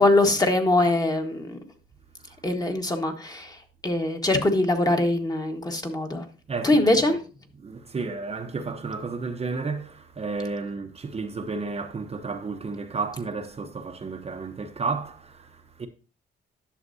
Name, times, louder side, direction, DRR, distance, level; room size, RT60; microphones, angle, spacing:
voice 1, 0.0-1.6 2.4-3.6 3.8-6.2 6.6-7.2, left 2 dB, 20° left, 1.4 m, -22 dB
voice 2, 6.5-7.2 7.5-15.9, right 4 dB, 30° right, 0.8 m, -32 dB
11.0 x 6.6 x 2.7 m
cardioid pair, 90°, 20 cm